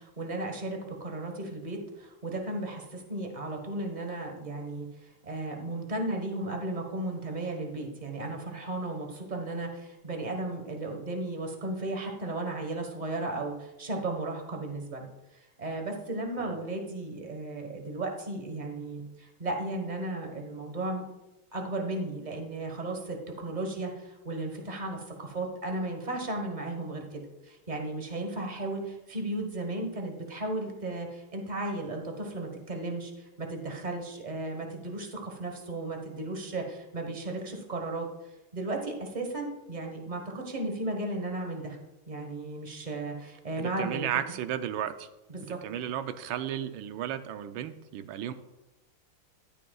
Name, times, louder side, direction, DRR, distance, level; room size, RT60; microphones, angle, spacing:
voice 1, 0.0-15.1 15.6-21.0 21.5-38.1 38.5-41.8 42.1-44.1 45.3-45.6, right 2 dB, 25° right, 3 dB, 1.0 m, -35 dB
voice 2, 43.6-45.1 45.4-48.3, right 10 dB, 75° right, 10 dB, 1.3 m, -34 dB
14.0 x 9.1 x 2.3 m, 1.0 s
omnidirectional pair, 2.4 m